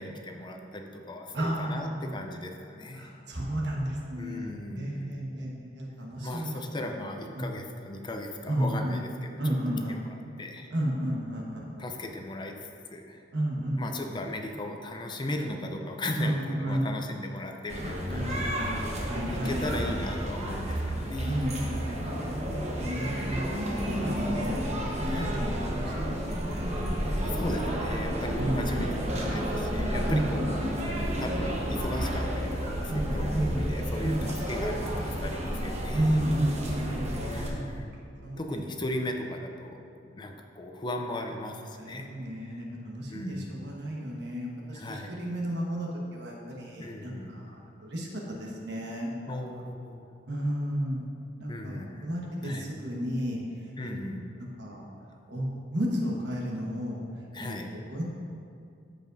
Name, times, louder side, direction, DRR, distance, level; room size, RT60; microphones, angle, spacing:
voice 1, 0.0-3.1 4.2-5.1 6.2-9.6 9.9-10.7 11.8-13.2 13.8-21.5 21.9-22.2 23.9-24.3 25.1-25.4 27.1-28.9 29.2-30.8 31.2-36.2 37.3-37.9 38.4-39.8 40.1-42.1 42.4-42.6 43.1-43.5 44.7-45.1 46.8-47.5 49.3-50.1 51.5-52.1 52.4-52.7 53.8-54.2 57.3-57.8, left 1 dB, 25° left, 4 dB, 0.5 m, -37 dB
voice 2, 1.3-2.1 3.0-6.6 7.3-7.5 8.5-9.0 9.4-10.0 10.7-11.8 13.3-14.0 16.2-16.9 18.1-19.8 21.2-24.7 25.0-26.2 26.4-26.6 27.3-27.4 28.4-28.7 30.1-30.5 32.9-33.7 34.0-34.3 35.9-37.7 38.2-38.6 41.8-48.1 48.4-49.1 50.3-51.1 51.4-53.4 53.8-53.9 54.6-54.8 55.3-57.0 57.4-57.5 57.9-58.0, right 1 dB, 70° right, -2 dB, 1.4 m, -32 dB
sound 1, 17.7-37.5, equal, 40° right, 1.1 m, -31 dB
13.5 x 5.1 x 2.7 m, 2.4 s
head